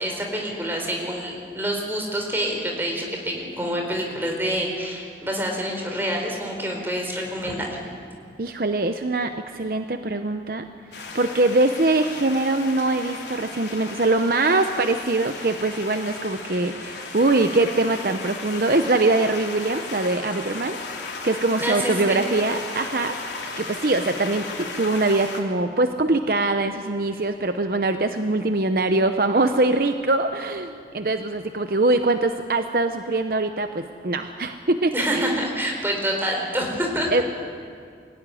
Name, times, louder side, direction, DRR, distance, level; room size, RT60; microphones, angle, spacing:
voice 1, 0.0-7.8 21.6-22.2 34.9-37.2, equal, 10° right, 1 dB, 4.0 m, -27 dB
voice 2, 8.4-10.6 10.9-20.8 21.2-23.2 23.6-35.4 37.1-37.2, right 2 dB, 55° right, 7 dB, 0.8 m, -23 dB
sound 1, 10.9-25.4, left 3 dB, 75° left, 3.5 m, -35 dB
24.0 x 16.0 x 10.0 m, 2.2 s
head